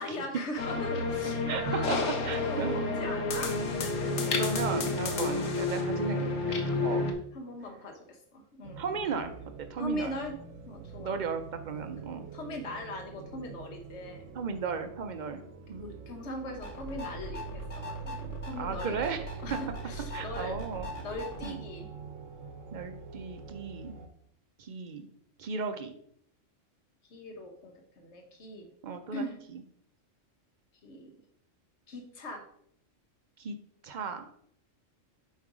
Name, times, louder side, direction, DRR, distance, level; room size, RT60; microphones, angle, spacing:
voice 1, 0.0-2.1 2.3-4.4 5.2-5.5 6.7-8.8 9.8-10.4 10.7-11.2 12.3-14.3 15.8-19.0 19.4-20.6 21.0-21.9 27.1-28.7 29.1-29.4 30.8-31.1 31.9-32.4, left 1 dB, 65° left, 3 dB, 1.4 m, -40 dB
sound 1, 0.6-7.1, left 3 dB, 85° left, 1.2 m, -30 dB
voice 2, 1.5-2.0 2.3-2.8 4.3-7.1 8.8-10.2 11.0-12.3 14.3-15.4 15.7-15.9 18.6-19.6 20.1-20.9 21.4-21.6 22.7-23.9 24.6-25.1 25.4-25.9 28.8-29.2 29.5-29.6 33.4-33.6 33.8-34.3, right 5 dB, 50° right, 8 dB, 0.5 m, -35 dB
sound 2, 8.6-24.1, right 6 dB, 85° right, 1.0 m, -45 dB
sound 3, 16.5-21.5, left 1 dB, 30° left, 1.3 m, -41 dB
7.4 x 3.2 x 4.8 m, 0.67 s
omnidirectional pair, 1.3 m